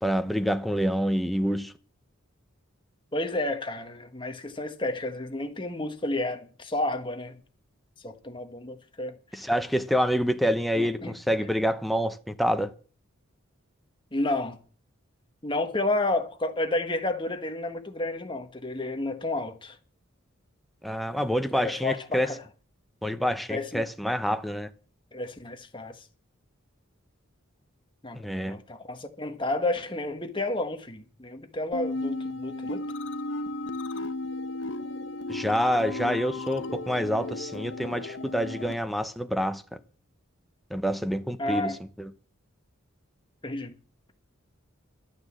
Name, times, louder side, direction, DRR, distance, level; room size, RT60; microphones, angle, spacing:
voice 1, 0.0-1.7 9.3-12.7 20.8-22.3 23.0-24.7 28.1-28.6 35.3-39.6 40.7-42.1, equal, ahead, 0.8 m, -27 dB
voice 2, 3.1-7.4 8.0-9.1 10.7-11.1 14.1-14.6 15.4-19.8 21.5-22.4 23.5-23.8 25.1-26.0 28.0-28.2 28.5-32.8 41.4-41.8 43.4-43.7, left 2 dB, 25° left, 1.6 m, -31 dB
sound 1, 31.7-38.8, left 2 dB, 60° left, 1.1 m, -34 dB
12.0 x 9.4 x 7.5 m
head